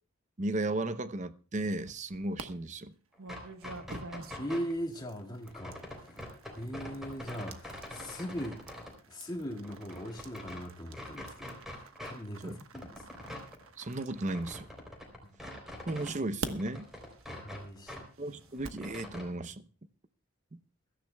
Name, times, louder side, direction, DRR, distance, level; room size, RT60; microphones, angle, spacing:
voice 1, 0.4-2.9 12.4-12.6 13.8-14.7 15.9-16.9 18.2-19.6, right 2 dB, 35° right, 0.7 m, -35 dB
sound 1, 1.6-2.4 3.2-15.2 15.9-18.9, right 3 dB, 75° right, 1.2 m, -47 dB
sound 2, 3.1-4.7 5.5-8.9 9.4-10.6 10.9-12.2 12.4-16.2 16.4-18.0 18.3-19.2, left 1 dB, ahead, 3.5 m, -45 dB
voice 2, 4.4-8.6 9.1-13.0 15.2-15.3 17.3-18.1, equal, 20° left, 2.0 m, -40 dB
22.5 x 13.5 x 2.3 m
head